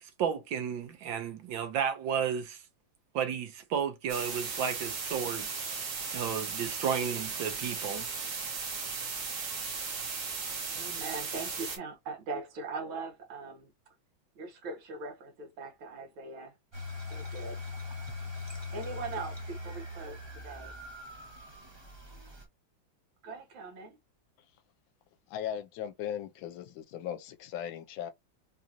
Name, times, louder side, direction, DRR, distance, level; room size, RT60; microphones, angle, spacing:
voice 1, 0.0-2.6 3.1-5.5 6.1-8.1, right 7 dB, 75° right, 1.6 m, -33 dB
sound 1, 4.1-11.8, right 5 dB, 55° right, 1.3 m, -36 dB
voice 2, 10.7-13.7 14.4-16.5 17.1-17.6 18.7-20.8 23.2-24.0, right 4 dB, 90° right, 2.0 m, -41 dB
sound 2, 16.7-22.4, left 2 dB, 40° right, 0.4 m, -41 dB
voice 3, 25.3-28.1, left 9 dB, 80° left, 1.4 m, -38 dB
4.0 x 2.5 x 2.8 m
omnidirectional pair, 2.2 m